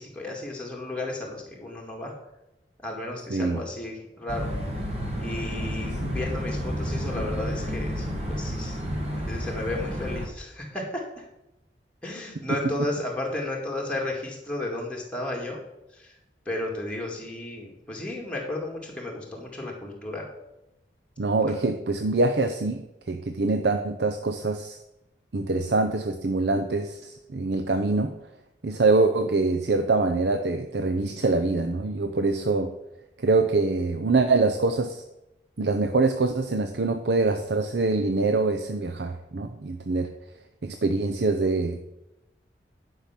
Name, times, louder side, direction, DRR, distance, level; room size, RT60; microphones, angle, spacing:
voice 1, 0.0-2.1 2.8-4.5 5.2-8.8 9.3-11.2 12.0-15.6 15.9-16.1 16.5-20.3 21.5-21.6, left 2 dB, 5° left, -2 dB, 2.1 m, -33 dB
voice 2, 3.3-3.6 21.2-24.8 25.3-28.1 28.6-32.7 33.2-35.0 35.6-40.1 40.6-41.8, right 3 dB, 75° right, 6 dB, 0.7 m, -24 dB
sound 1, 4.3-10.3, equal, 35° right, 1.7 m, -30 dB
10.5 x 5.7 x 5.8 m, 0.91 s
head